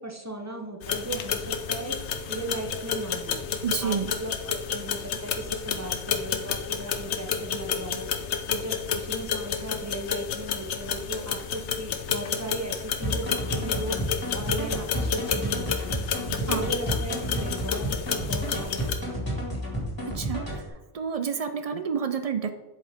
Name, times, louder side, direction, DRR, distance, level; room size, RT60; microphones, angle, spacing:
voice 1, 0.0-2.0 2.3-3.4 3.8-8.1 8.5-14.0 14.3-15.9 16.4-19.7, right 1 dB, 20° right, 3 dB, 0.6 m, -37 dB
sound 1, 0.8-18.9, left 7 dB, 85° left, 1.0 m, -31 dB
voice 2, 3.6-4.1 16.5-16.6 20.1-20.6 20.9-22.5, right 6 dB, 60° right, 9 dB, 0.4 m, -29 dB
sound 2, 13.0-20.7, equal, 20° left, 2.1 m, -31 dB
7.7 x 5.1 x 3.5 m, 1.1 s
omnidirectional pair, 1.1 m